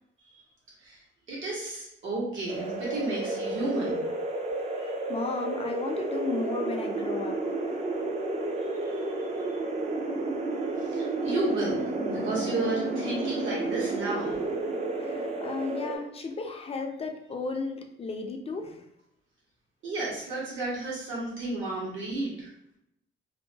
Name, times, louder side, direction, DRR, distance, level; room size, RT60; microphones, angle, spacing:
voice 1, 1.3-4.0 4.3-4.4 4.8-4.9 8.8-8.9 9.4-9.6 10.9-14.4 19.8-22.5, right 2 dB, 70° right, -6 dB, 1.2 m, -32 dB
sound 1, 2.5-16.0, right 2 dB, 30° right, 0.4 m, -31 dB
voice 2, 4.7-7.4 15.0-18.8, left 4 dB, 30° left, 3 dB, 0.4 m, -34 dB
2.7 x 2.1 x 2.7 m, 0.78 s
cardioid pair, 115°, 21 cm